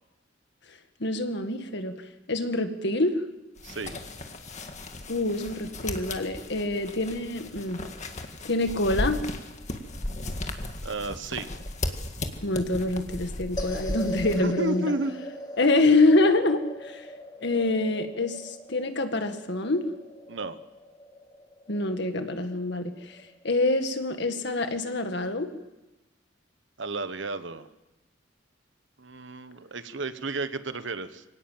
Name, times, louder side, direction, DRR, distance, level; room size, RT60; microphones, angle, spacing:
voice 1, 1.0-1.9 2.3-3.1 5.1-7.8 8.2-9.2 12.4-14.9 15.6-17.1 17.4-19.8 21.7-23.2 23.4-25.5, left 2 dB, 65° left, 7 dB, 1.9 m, -26 dB
sound 1, 3.6-14.4, left 1 dB, 40° left, 1.9 m, -36 dB
voice 2, 3.6-4.0 10.8-11.5 14.4-15.2 20.3-20.6 26.8-27.7 29.0-31.2, right 2 dB, 70° right, 11 dB, 1.2 m, -32 dB
sound 2, 13.6-24.0, left 1 dB, 20° left, 2.6 m, -41 dB
24.5 x 18.0 x 7.5 m, 1.0 s
head